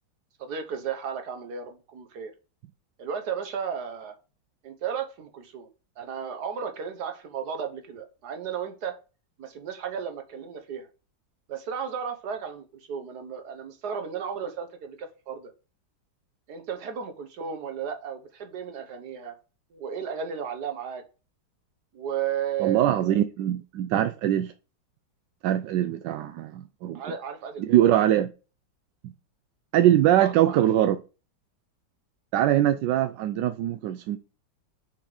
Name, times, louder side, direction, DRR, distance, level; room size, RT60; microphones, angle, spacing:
voice 1, 0.4-2.3 3.0-4.1 4.6-5.7 6.0-8.9 9.4-10.9 11.5-15.5 16.5-19.4 19.7-21.0 21.9-23.0 26.9-28.1 30.2-30.7, right 7 dB, 60° right, 1.6 m, -34 dB
voice 2, 22.6-24.5 25.4-27.0 27.6-28.3 29.0-29.1 29.7-31.0 32.3-34.2, right 12 dB, 75° right, 1.1 m, -22 dB
5.7 x 4.5 x 4.8 m
omnidirectional pair, 2.2 m